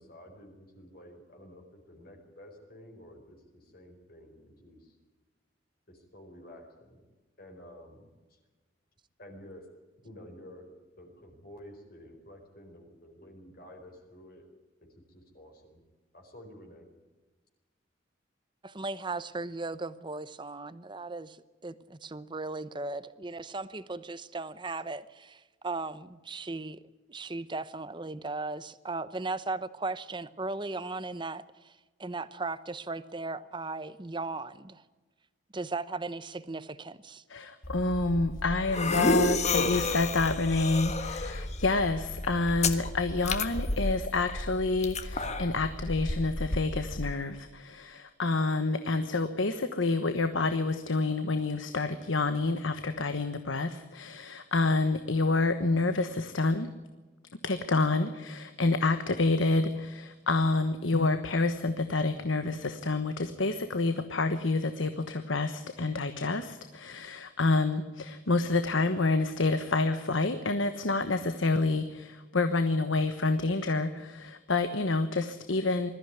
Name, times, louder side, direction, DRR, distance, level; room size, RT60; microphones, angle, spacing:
voice 1, 0.0-5.0 5.9-7.0 7.4-8.4 9.2-9.7 10.0-10.7 10.9-14.5 14.8-15.8 16.1-16.9, left 1 dB, 50° left, 1 dB, 4.7 m, -51 dB
voice 2, 18.6-26.8 27.1-34.8 35.5-37.2, right 3 dB, 25° right, 15 dB, 0.8 m, -37 dB
voice 3, 37.3-56.7 57.4-75.9, left 3 dB, 85° left, 9 dB, 1.2 m, -28 dB
sound 1, 37.6-47.1, left 2 dB, 35° left, 1.5 m, -32 dB
21.5 x 14.5 x 9.5 m, 1.2 s
head